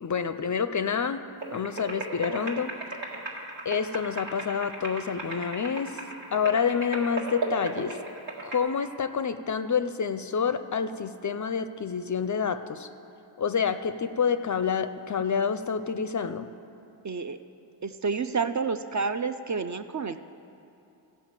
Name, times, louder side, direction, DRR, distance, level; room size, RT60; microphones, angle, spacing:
voice 1, 0.0-1.2 1.5-2.7 3.7-6.0 6.3-8.0 8.4-12.9 13.4-16.5, left 6 dB, 45° left, 11 dB, 0.4 m, -28 dB
sound 1, 1.4-8.6, right 2 dB, 75° right, 1.7 m, -36 dB
voice 2, 17.0-17.4 17.8-20.2, right 5 dB, 40° right, 10 dB, 0.4 m, -29 dB
15.0 x 5.5 x 7.3 m, 2.8 s
wide cardioid pair, 110°, 45 cm